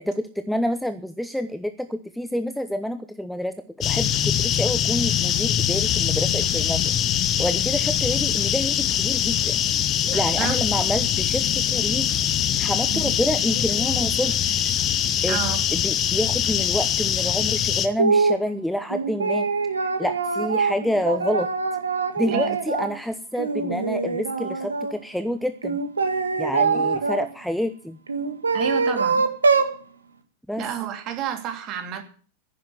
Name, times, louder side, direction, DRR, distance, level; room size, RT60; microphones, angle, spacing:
voice 1, 0.1-6.9 7.4-9.5 10.1-12.1 12.6-14.7 15.2-15.4 15.7-19.5 19.8-21.5 22.2-25.8 26.4-28.0 30.5-30.6, equal, ahead, 10 dB, 0.9 m, -28 dB
sound 1, 3.8-17.9, left 10 dB, 30° left, 1.2 m, -23 dB
voice 2, 10.1-10.5 12.9-13.1 15.3-15.6 22.3-22.6 26.7-26.8 28.5-29.3 30.6-32.0, right 9 dB, 35° right, 6 dB, 2.8 m, -30 dB
sound 2, 18.0-18.4 18.9-22.9 23.4-24.9 25.6-27.3 28.1-29.8, right 4 dB, 75° right, 1.7 m, -23 dB
10.5 x 10.5 x 9.0 m, 0.42 s
figure-of-eight pair, 90°, 0 cm